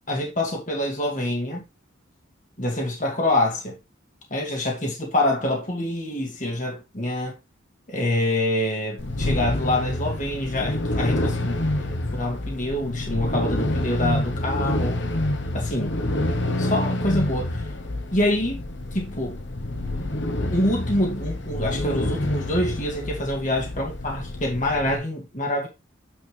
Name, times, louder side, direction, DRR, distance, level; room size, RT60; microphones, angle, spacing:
voice 1, 0.1-1.6 2.6-3.8 4.3-7.4 7.9-15.0 15.5-15.9 16.6-17.6 18.1-18.6 18.9-19.4 20.5-25.7, left 1 dB, 40° left, 2.3 m, -26 dB
sound 1, 9.0-25.0, left 1 dB, 60° left, 1.1 m, -28 dB
9.3 x 4.4 x 3.3 m
head